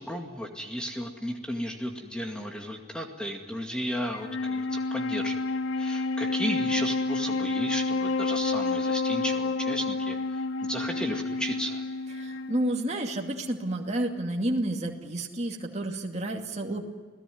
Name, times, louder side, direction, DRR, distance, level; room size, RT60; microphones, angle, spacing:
voice 1, 0.0-5.4 5.8-11.8, equal, 5° left, 2 dB, 2.2 m, -34 dB
Wind instrument woodwind instrument, 4.1-13.6, left 3 dB, 75° left, 0.8 m, -30 dB
voice 2, 12.2-16.8, right 1 dB, 35° right, 2 dB, 2.5 m, -30 dB
29.0 x 18.0 x 9.4 m, 1.5 s
head